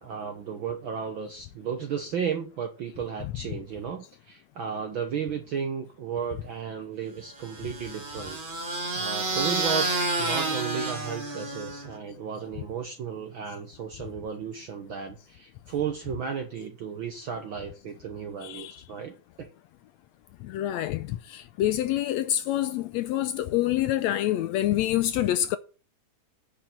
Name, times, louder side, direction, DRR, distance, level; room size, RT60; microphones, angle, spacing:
voice 1, 0.0-8.4 8.7-19.5, right 7 dB, 65° right, 1.2 m, -34 dB
sound 1, 7.4-12.0, right 3 dB, 30° right, 1.0 m, -30 dB
voice 2, 18.4-18.7 20.4-25.6, left 13 dB, 80° left, 1.6 m, -27 dB
10.0 x 5.1 x 7.5 m
omnidirectional pair, 3.5 m